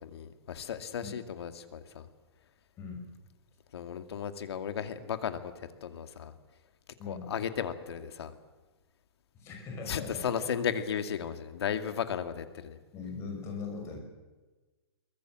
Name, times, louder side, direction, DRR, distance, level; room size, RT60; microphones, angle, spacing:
voice 1, 0.0-2.1 3.7-6.3 7.1-8.3 9.9-12.8, left 8 dB, 70° left, 8 dB, 2.3 m, -35 dB
voice 2, 9.4-10.3 12.9-14.0, left 5 dB, 20° left, 2 dB, 5.6 m, -40 dB
23.0 x 21.5 x 7.7 m, 1.2 s
hypercardioid pair, 170°, 14 cm